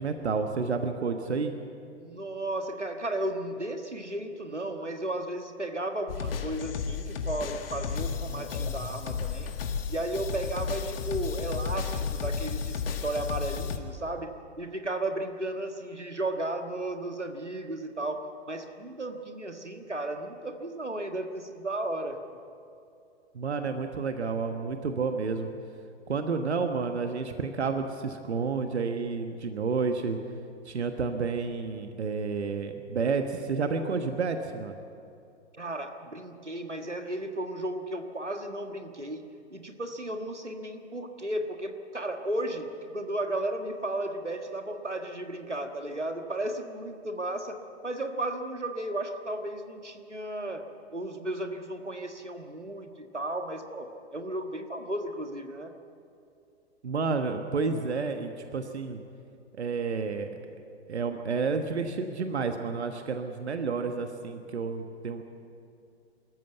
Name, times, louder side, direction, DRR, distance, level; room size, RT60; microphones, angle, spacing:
voice 1, 0.0-1.5 23.3-25.5 26.1-30.2 30.6-34.8 56.8-59.0 59.6-60.3 60.9-65.2, right 4 dB, 70° right, 7 dB, 1.3 m, -30 dB
voice 2, 2.0-9.5 9.9-14.3 14.6-22.2 35.6-47.6 47.8-50.6 50.9-55.7, right 1 dB, 90° right, 6 dB, 1.6 m, -34 dB
sound 1, 6.1-13.8, left 6 dB, 55° left, 1.8 m, -33 dB
24.0 x 14.0 x 8.0 m, 2.5 s
figure-of-eight pair, 105°, 34 cm